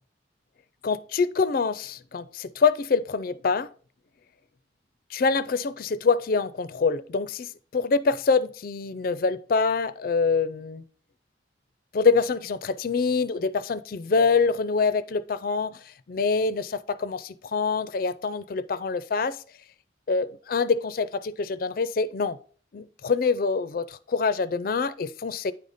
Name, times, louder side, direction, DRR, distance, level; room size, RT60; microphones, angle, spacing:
voice 1, 0.8-3.7 5.1-10.8 11.9-15.8 16.1-19.4 20.1-22.4 22.7-25.5, left 4 dB, 50° left, 0.4 m, -25 dB
9.7 x 4.1 x 5.0 m
head